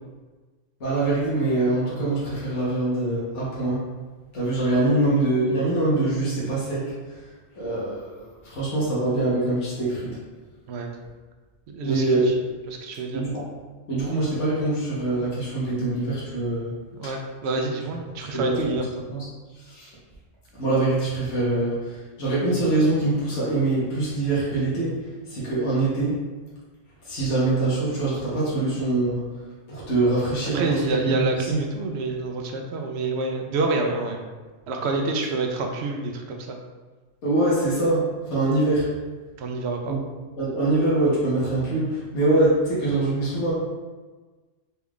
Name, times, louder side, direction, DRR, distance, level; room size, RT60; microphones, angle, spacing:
voice 1, 0.8-3.8 4.3-7.2 7.6-10.2 11.8-12.3 13.1-13.5 13.9-16.7 18.3-18.8 19.1-19.3 19.6-19.9 20.6-26.2 27.0-29.2 29.7-31.6 37.2-38.9 39.8-40.0 40.4-43.5, right 2 dB, 75° left, -8 dB, 1.4 m, -24 dB
voice 2, 11.7-12.3 12.7-13.2 16.9-19.0 30.5-34.2 34.7-36.6 39.4-40.0, right 3 dB, 70° right, 3 dB, 0.8 m, -27 dB
4.2 x 2.3 x 3.5 m, 1.3 s
omnidirectional pair, 1.2 m